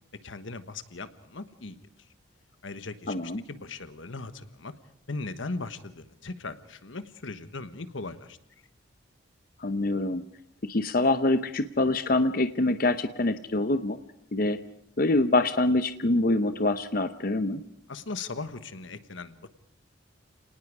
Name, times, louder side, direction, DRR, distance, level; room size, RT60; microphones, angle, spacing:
voice 1, 0.2-1.8 2.6-4.7 5.1-8.4 17.9-19.5, left 3 dB, 85° left, 11 dB, 1.3 m, -38 dB
voice 2, 3.1-3.4 9.6-10.2 10.6-14.0 14.3-14.6 15.0-17.6, left 2 dB, 50° left, 10 dB, 0.8 m, -25 dB
30.0 x 19.0 x 4.8 m, 0.71 s
head